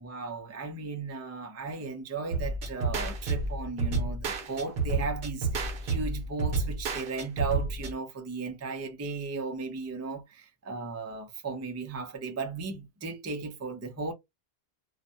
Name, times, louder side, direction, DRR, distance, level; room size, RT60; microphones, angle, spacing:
voice 1, 0.0-14.1, right 4 dB, 25° right, 0.3 m, -36 dB
sound 1, 2.3-7.9, right 3 dB, 60° right, 0.8 m, -30 dB
2.4 x 2.1 x 2.6 m
omnidirectional pair, 1.1 m